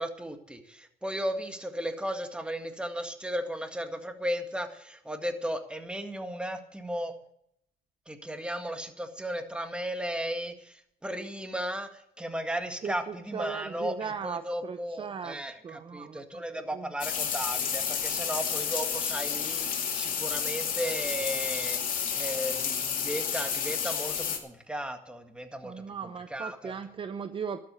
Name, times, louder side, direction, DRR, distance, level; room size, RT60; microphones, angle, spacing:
voice 1, 0.0-7.1 8.1-25.8 26.3-26.7, equal, 5° right, 6 dB, 1.9 m, -35 dB
voice 2, 12.8-16.4 16.7-16.9 25.6-27.6, right 6 dB, 30° right, 10 dB, 0.7 m, -38 dB
sound 1, 17.0-24.4, left 7 dB, 55° left, 2.7 m, -31 dB
12.5 x 8.3 x 8.9 m, 0.73 s
cardioid pair, 110°, 17 cm